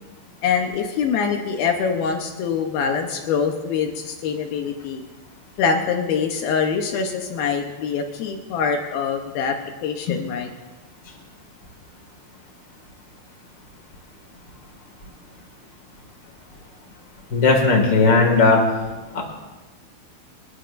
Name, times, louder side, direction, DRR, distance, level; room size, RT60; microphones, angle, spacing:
voice 1, 0.4-5.0 5.6-9.6 9.8-10.5, left 6 dB, 80° left, 3 dB, 2.2 m, -24 dB
voice 2, 17.3-18.6 19.1-19.2, left 3 dB, 40° left, 0 dB, 1.6 m, -16 dB
28.5 x 11.5 x 2.5 m, 1.2 s
omnidirectional pair, 5.4 m